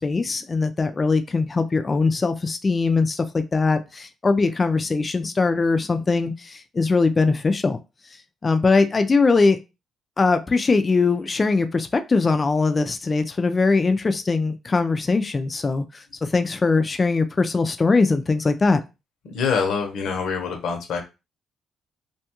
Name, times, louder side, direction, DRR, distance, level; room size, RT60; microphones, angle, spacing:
voice 1, 0.0-7.8 8.4-9.6 10.2-18.8, left 4 dB, 30° left, 0.4 m, -21 dB
voice 2, 19.2-21.0, left 5 dB, 75° left, 0.7 m, -25 dB
2.6 x 2.3 x 2.9 m
cardioid pair, 90°, 0 cm